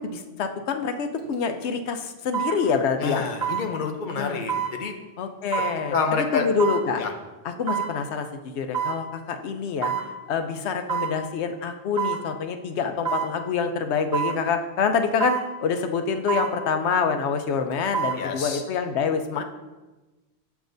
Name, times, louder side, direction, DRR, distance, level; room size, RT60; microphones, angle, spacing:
voice 1, 0.0-3.2 4.1-4.4 5.2-7.0 7.4-9.9 10.3-19.4, left 5 dB, 85° left, 7 dB, 0.9 m, -26 dB
sound 1, 1.2-1.3 2.3-2.6 3.4-3.7 4.5-4.7 5.5-5.8 6.6-6.8 7.7-7.9 8.7-9.0 9.8-10.1 10.9-11.2 12.0-12.2 13.0-13.3 14.1-14.4 15.2-15.5 16.3-16.5 17.7-18.2 18.6-18.7, right 8 dB, 85° right, 1.5 m, -26 dB
voice 2, 3.0-4.9 5.9-6.5 7.0-7.1 18.2-18.6, left 5 dB, 50° left, 4 dB, 0.8 m, -27 dB
7.3 x 7.0 x 2.6 m, 1.2 s
omnidirectional pair, 1.1 m